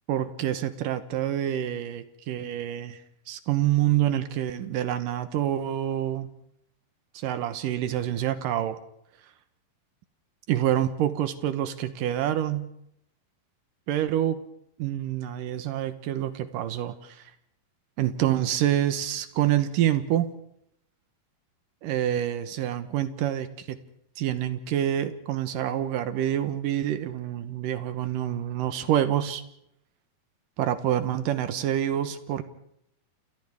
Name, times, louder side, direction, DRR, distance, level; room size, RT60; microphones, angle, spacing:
voice 1, 0.1-3.0 3.3-6.3 7.1-8.8 10.5-12.7 13.9-14.4 14.8-17.2 18.0-20.4 21.8-23.8 24.2-29.4 30.6-32.4, right 11 dB, 70° right, 10 dB, 2.3 m, -27 dB
29.0 x 28.5 x 3.5 m, 0.75 s
omnidirectional pair, 4.6 m